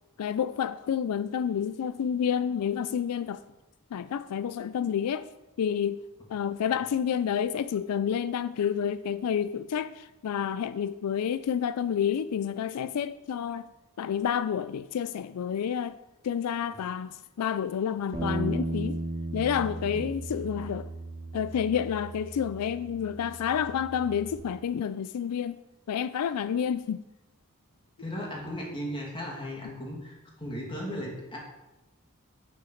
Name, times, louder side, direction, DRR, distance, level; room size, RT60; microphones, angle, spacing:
voice 1, 0.2-3.4 3.9-5.3 5.6-6.0 6.3-13.7 14.0-16.0 16.2-19.0 19.3-20.9 21.3-25.6 25.9-27.0, left 8 dB, 85° left, 0.4 m, -29 dB
Bass guitar, 18.1-24.4, right 2 dB, 35° right, 1.9 m, -36 dB
voice 2, 28.0-31.4, equal, 25° left, 2.5 m, -36 dB
8.8 x 6.0 x 6.3 m
head